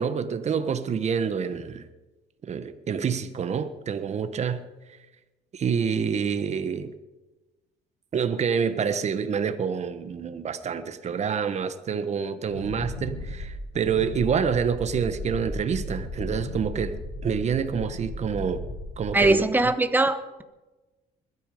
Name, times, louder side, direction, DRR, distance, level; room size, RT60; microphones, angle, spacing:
voice 1, 0.0-1.9 2.5-4.6 5.5-6.9 8.1-17.0 17.2-18.6 19.0-19.7, right 7 dB, 40° right, 1.4 m, -27 dB
Wind, 12.5-19.6, left 2 dB, 90° left, 7.7 m, -36 dB
voice 2, 19.1-20.4, right 2 dB, 10° right, 1.2 m, -21 dB
21.0 x 13.0 x 5.1 m
cardioid pair, 110°, 17 cm